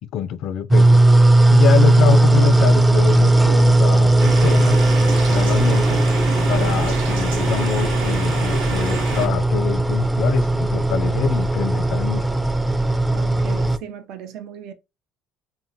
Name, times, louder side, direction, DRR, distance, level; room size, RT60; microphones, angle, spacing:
voice 1, 0.1-1.0 1.5-4.8 5.3-6.0 6.5-12.3, left 9 dB, 65° left, 0.3 m, -25 dB
sound 1, 0.7-13.8, right 2 dB, 10° right, 0.4 m, -17 dB
sound 2, 2.9-9.5, equal, 35° right, 0.9 m, -39 dB
sound 3, 4.2-9.3, right 4 dB, 90° right, 1.0 m, -28 dB
voice 2, 13.1-14.7, right 9 dB, 70° right, 0.5 m, -37 dB
3.6 x 2.1 x 2.7 m
supercardioid pair, 80°, 0 cm